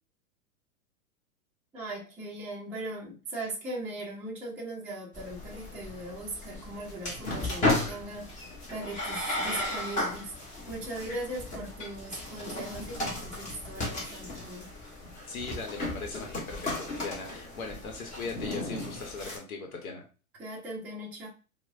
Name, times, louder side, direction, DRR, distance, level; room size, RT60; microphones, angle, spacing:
voice 1, 1.7-8.3 8.7-10.3 10.7-14.7 20.4-21.3, right 1 dB, 5° right, -5 dB, 0.4 m, -39 dB
sound 1, 5.1-19.4, left 2 dB, 20° left, 0.8 m, -35 dB
voice 2, 15.3-20.1, left 4 dB, 75° left, 2 dB, 0.9 m, -39 dB
4.4 x 2.1 x 2.4 m, 0.34 s
hypercardioid pair, 120°, 43 cm